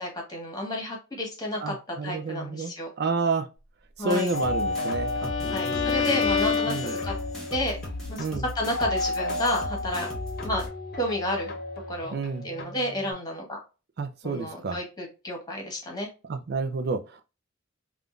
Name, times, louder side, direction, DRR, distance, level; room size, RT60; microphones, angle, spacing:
voice 1, 0.0-2.9 4.0-4.3 5.5-7.1 7.5-7.8 8.1-10.1 10.4-10.6 11.0-11.5 11.9-12.2 12.4-13.6 14.2-16.1, left 1 dB, 20° left, 1.3 m, -31 dB
voice 2, 1.6-2.7 3.0-3.5 4.0-6.2 6.7-6.9 8.2-8.4 12.1-12.5 14.0-14.8 16.3-17.2, right 3 dB, 55° right, 0.4 m, -30 dB
sound 1, 4.1-10.7, left 1 dB, 5° left, 1.0 m, -37 dB
sound 2, 4.3-13.1, left 2 dB, 50° left, 0.8 m, -33 dB
Bowed string instrument, 4.4-7.5, left 6 dB, 85° left, 0.7 m, -28 dB
3.5 x 2.4 x 2.5 m
head